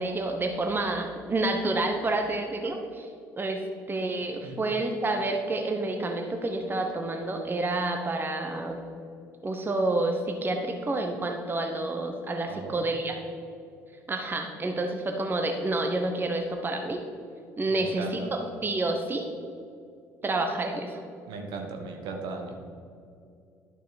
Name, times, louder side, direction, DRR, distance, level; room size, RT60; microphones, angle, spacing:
voice 1, 0.0-3.1 3.4-3.6 3.9-8.8 9.4-13.2 14.1-17.0 17.6-19.3 20.2-21.0, right 2 dB, 25° right, 4 dB, 1.0 m, -29 dB
voice 2, 12.5-12.8 17.7-18.3 21.3-22.5, right 4 dB, 65° right, 2 dB, 1.3 m, -37 dB
11.0 x 6.1 x 4.0 m, 2.5 s
hypercardioid pair, 55°, 8 cm